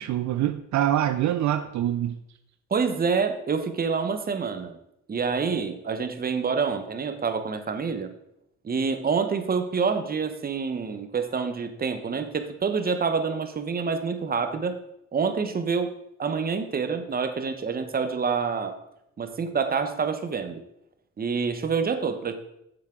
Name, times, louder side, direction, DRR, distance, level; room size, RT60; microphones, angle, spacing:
voice 1, 0.0-2.2, right 11 dB, 70° right, 10 dB, 0.5 m, -25 dB
voice 2, 2.7-4.8 5.1-8.1 8.6-14.7 15.1-18.8 19.2-20.6 21.2-22.3, right 5 dB, 30° right, 8 dB, 0.9 m, -27 dB
7.1 x 6.9 x 3.7 m, 0.82 s
cardioid pair, 90°, 30 cm